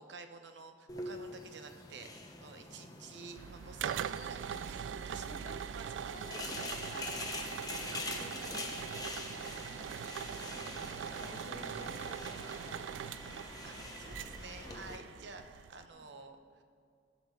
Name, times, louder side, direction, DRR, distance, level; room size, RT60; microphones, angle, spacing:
voice 1, 0.0-2.1 2.4-5.3 5.7-6.1 13.6-16.6, right 4 dB, 70° right, 7 dB, 0.9 m, -51 dB
sound 1, 0.9-15.0, left 2 dB, 20° left, 1.0 m, -45 dB
sound 2, 3.4-15.9, right 8 dB, 85° right, 0.3 m, -42 dB
voice 2, 5.1-7.2 8.2-9.2 9.7-9.9 10.9-12.8 14.6-14.8 15.9-16.1, left 2 dB, 40° left, 1 dB, 1.6 m, -53 dB
16.0 x 5.4 x 6.4 m, 2.4 s
head